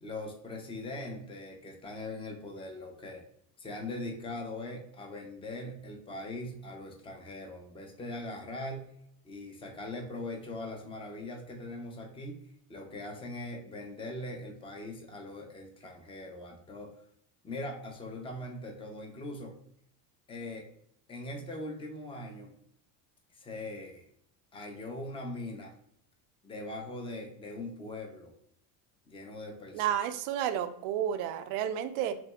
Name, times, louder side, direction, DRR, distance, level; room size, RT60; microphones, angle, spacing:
voice 1, 0.0-3.2 3.6-8.9 9.2-12.4 12.7-16.9 17.4-19.6 20.3-20.7 21.1-22.6 23.3-24.0 24.5-25.7 26.4-28.3 29.1-29.8, left 2 dB, 10° left, 2 dB, 0.6 m, -41 dB
voice 2, 29.7-32.1, right 10 dB, 75° right, 9 dB, 0.6 m, -31 dB
5.9 x 2.1 x 2.3 m, 0.69 s
supercardioid pair, 110°, 44 cm